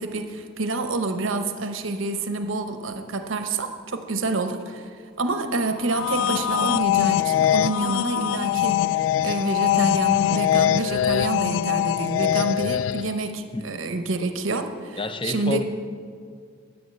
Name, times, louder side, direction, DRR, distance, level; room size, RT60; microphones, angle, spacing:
voice 1, 0.0-15.6, right 2 dB, 85° right, 7 dB, 1.0 m, -28 dB
sound 1, 5.8-13.2, left 11 dB, 80° left, 0.3 m, -22 dB
voice 2, 13.5-13.9 15.0-15.6, left 2 dB, 25° left, 9 dB, 0.7 m, -30 dB
13.5 x 9.4 x 7.8 m, 2.1 s
head